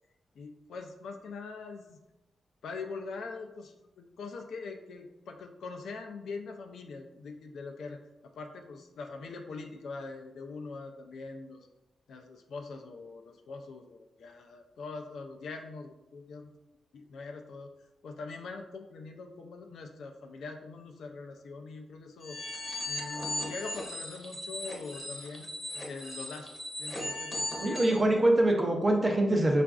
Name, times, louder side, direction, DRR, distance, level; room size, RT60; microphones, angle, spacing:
voice 1, 0.3-2.0 2.6-8.0 8.4-11.7 12.1-16.5 16.9-17.7 18.0-22.4 22.9-26.5 26.8-27.8, left 4 dB, 80° left, 3 dB, 0.4 m, -43 dB
sound 1, 22.2-28.0, left 1 dB, 20° left, 0.8 m, -38 dB
voice 2, 27.6-29.6, right 1 dB, 20° right, 1 dB, 0.6 m, -24 dB
5.8 x 2.5 x 2.3 m, 0.98 s
wide cardioid pair, 150°, 0 cm